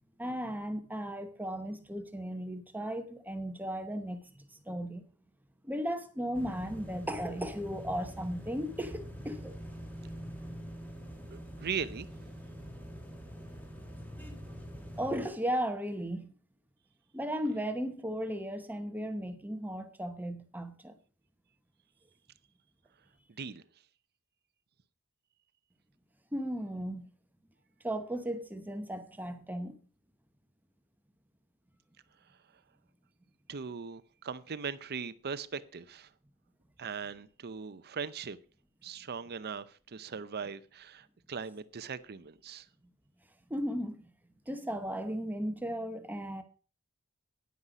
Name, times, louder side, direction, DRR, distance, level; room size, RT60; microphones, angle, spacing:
voice 1, 0.2-5.0 5.6-9.5 15.0-16.3 17.1-20.9 26.3-27.1 27.8-29.8 43.5-44.0 44.5-46.4, equal, 10° right, 0.9 m, -36 dB
sound 1, 6.3-15.3, equal, 10° left, 1.6 m, -45 dB
voice 2, 11.3-12.1 23.4-23.6 33.5-36.1 36.8-38.4 38.8-42.7, right 6 dB, 45° right, 0.6 m, -39 dB
9.8 x 9.6 x 4.9 m
head